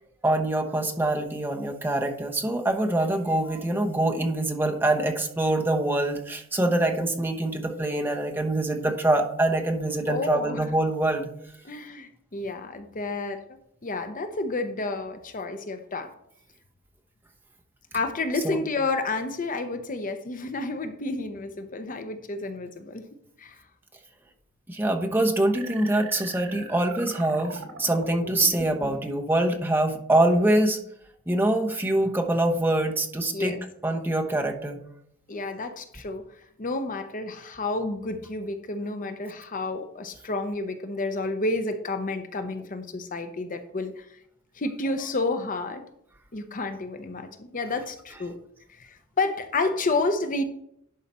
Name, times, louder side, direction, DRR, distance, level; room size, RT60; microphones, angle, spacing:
voice 1, 0.2-11.3 18.4-18.6 24.7-30.8 31.3-33.6 33.8-34.8, right 1 dB, 10° right, 2 dB, 1.0 m, -24 dB
voice 2, 10.1-10.7 11.6-13.4 13.8-16.1 17.9-23.0 23.4-23.6 33.3-33.6 35.3-36.2 36.6-44.2 44.6-45.8 46.3-48.3 48.7-50.4, left 3 dB, 40° left, 8 dB, 0.7 m, -30 dB
sound 1, 25.5-29.1, right 2 dB, 75° right, 1.7 m, -41 dB
11.0 x 4.9 x 4.3 m, 0.71 s
head